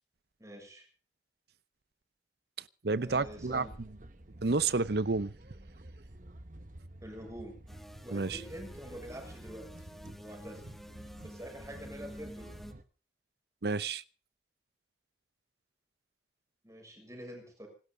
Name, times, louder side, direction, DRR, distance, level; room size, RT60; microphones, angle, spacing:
voice 1, 0.4-0.9 3.0-3.7 7.0-7.6 8.0-9.9 10.2-10.7 11.2-12.5 16.6-17.7, equal, 15° right, 6.5 m, -46 dB
voice 2, 2.8-3.7 4.4-5.3 8.1-8.4 13.6-14.0, right 3 dB, 60° right, 0.7 m, -30 dB
sound 1, 3.1-12.8, right 1 dB, 45° right, 1.3 m, -50 dB
sound 2, 7.7-12.7, equal, ahead, 1.3 m, -50 dB
26.5 x 12.5 x 3.8 m
head